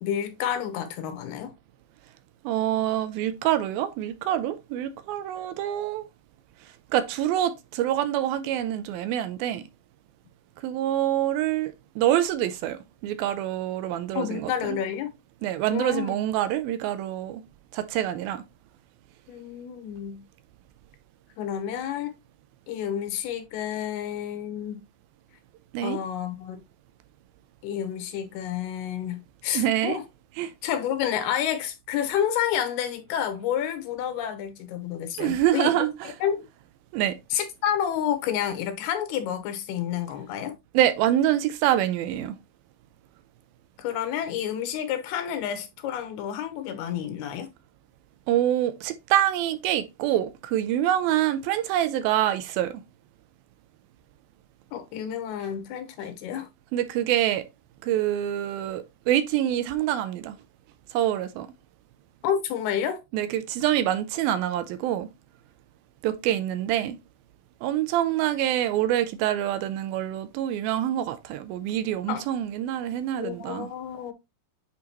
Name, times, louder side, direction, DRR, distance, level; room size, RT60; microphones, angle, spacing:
voice 1, 0.0-1.5 14.1-15.1 15.7-16.2 19.3-20.2 21.4-22.1 22.7-24.8 25.8-26.6 27.6-30.0 30.6-35.9 36.2-36.4 37.3-40.6 43.8-47.5 54.7-56.5 62.2-63.0 72.1-72.3 73.2-74.1, left 9 dB, 85° left, 3.0 m, -29 dB
voice 2, 2.4-6.1 6.9-9.6 10.6-14.8 15.4-17.4 17.7-18.4 25.7-26.0 29.5-30.0 30.4-30.5 35.2-36.1 36.9-37.2 40.7-42.4 48.3-52.8 56.7-57.4 57.8-60.4 60.9-61.5 63.1-65.1 66.0-67.0 67.6-73.7, right 12 dB, 80° right, 2.3 m, -26 dB
8.7 x 3.7 x 2.9 m
omnidirectional pair, 4.4 m